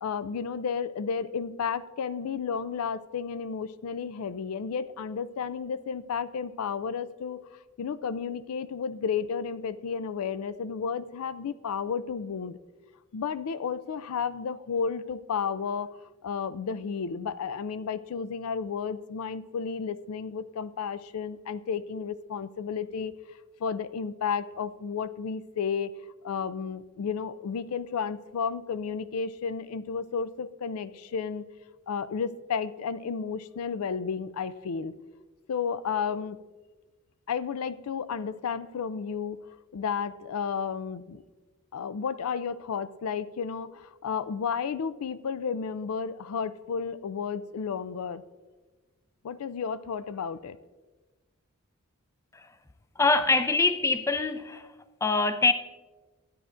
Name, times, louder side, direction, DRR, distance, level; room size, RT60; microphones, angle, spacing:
voice 1, 0.0-7.4 7.8-12.6 13.1-15.9 16.2-23.1 23.6-25.9 26.2-31.4 31.9-34.9 35.5-36.4 37.3-39.5 39.7-41.2 41.7-48.2 49.2-50.6, left 6 dB, 90° left, 0.4 m, -32 dB
voice 2, 53.0-54.7 55.0-55.5, left 3 dB, 15° left, 0.3 m, -24 dB
13.0 x 9.1 x 2.5 m
head